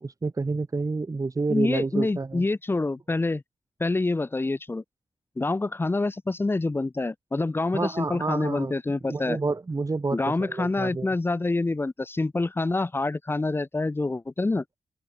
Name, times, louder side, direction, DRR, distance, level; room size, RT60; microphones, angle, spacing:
voice 1, 0.0-2.4 7.7-8.7 9.1-11.1, right 3 dB, 35° right, 1.4 m, -29 dB
voice 2, 1.5-3.4 3.8-4.8 5.4-9.4 10.1-14.6, left 2 dB, 25° left, 0.6 m, -26 dB
open air
cardioid pair, 65°, 10 cm